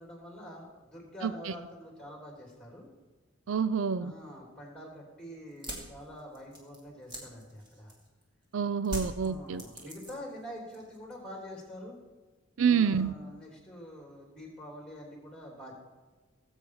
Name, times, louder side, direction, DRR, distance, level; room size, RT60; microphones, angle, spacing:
voice 1, 0.0-2.9 4.0-7.9 9.2-12.0 12.6-15.7, equal, 5° left, 0 dB, 3.1 m, -46 dB
voice 2, 1.2-1.5 3.5-4.1 8.5-9.6 12.6-13.1, right 6 dB, 75° right, 15 dB, 0.4 m, -28 dB
sound 1, 5.5-8.2 8.8-10.4 10.7-11.3, equal, 25° right, 2.5 m, -42 dB
19.0 x 8.3 x 4.8 m, 1.3 s
head